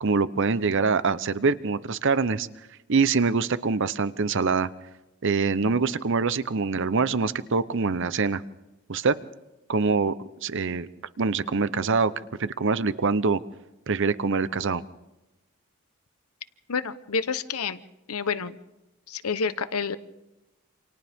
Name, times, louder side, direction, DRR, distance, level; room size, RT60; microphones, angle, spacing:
voice 1, 0.0-2.5 2.9-4.7 5.2-8.4 8.9-9.1 9.7-10.1 10.4-10.9 11.2-12.1 12.4-13.4 13.9-14.8, right 4 dB, 55° right, 15 dB, 0.7 m, -24 dB
voice 2, 16.7-17.8 18.1-18.6 19.1-20.0, left 5 dB, 85° left, 12 dB, 1.0 m, -28 dB
28.5 x 27.0 x 3.6 m, 1.0 s
head